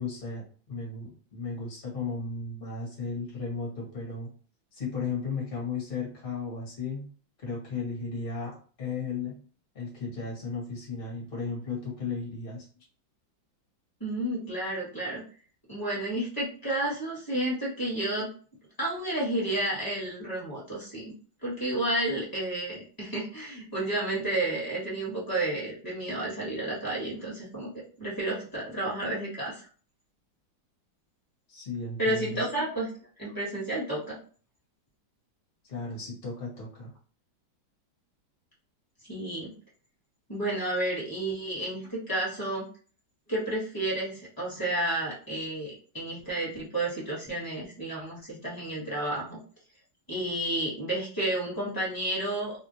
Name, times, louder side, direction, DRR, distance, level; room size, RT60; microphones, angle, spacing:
voice 1, 0.0-4.3 4.7-7.1 7.4-9.4 9.7-12.6 31.5-32.4 35.6-36.9, left 4 dB, 35° left, -4 dB, 1.2 m, -35 dB
voice 2, 14.0-15.2 15.7-18.3 18.8-21.1 21.4-27.7 28.0-29.6 32.0-32.9 33.2-34.2 39.1-39.5 40.3-42.6 43.3-49.4 50.1-52.5, right 1 dB, 15° left, -6 dB, 1.2 m, -31 dB
3.0 x 2.6 x 2.8 m, 0.41 s
omnidirectional pair, 2.1 m